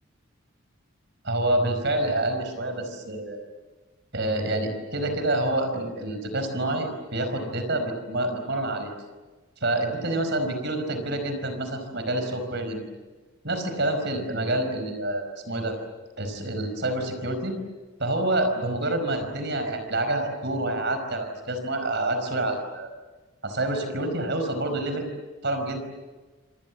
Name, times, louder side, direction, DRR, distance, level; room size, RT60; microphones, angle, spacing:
voice 1, 1.2-3.4 4.1-8.9 9.6-12.9 13.4-15.8 16.2-17.6 18.0-22.9 23.4-25.1 25.4-25.8, right 1 dB, 50° right, 7 dB, 5.0 m, -27 dB
27.5 x 27.0 x 7.4 m, 1.3 s
head